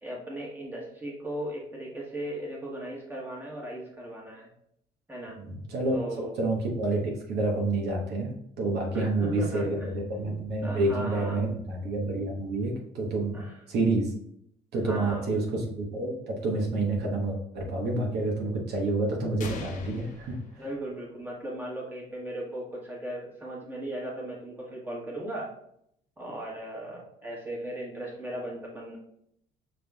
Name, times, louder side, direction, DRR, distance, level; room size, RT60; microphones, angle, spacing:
voice 1, 0.0-4.5 5.1-5.4 5.9-6.3 8.9-11.4 13.3-13.5 14.8-15.3 20.6-25.5 26.2-29.0, right 1 dB, 10° right, -3 dB, 1.4 m, -37 dB
voice 2, 5.4-13.4 13.7-14.1 14.7-20.6, right 2 dB, 75° right, 0 dB, 1.0 m, -29 dB
sound 1, 19.4-21.3, left 3 dB, 50° left, 0.7 m, -41 dB
5.9 x 3.5 x 2.3 m, 0.72 s
cardioid pair, 110°, 17 cm